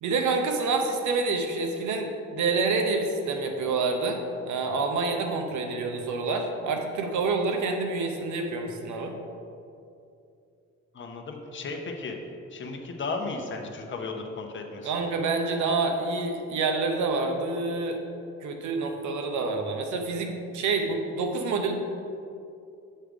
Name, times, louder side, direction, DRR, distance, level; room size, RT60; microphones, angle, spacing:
voice 1, 0.0-4.2 4.4-9.1 14.8-18.0 18.4-21.7, right 3 dB, 75° right, 4 dB, 0.9 m, -27 dB
voice 2, 10.9-12.2 12.5-14.9, left 3 dB, 40° left, 3 dB, 0.9 m, -35 dB
7.7 x 3.3 x 5.0 m, 2.6 s
cardioid pair, 90°, 30 cm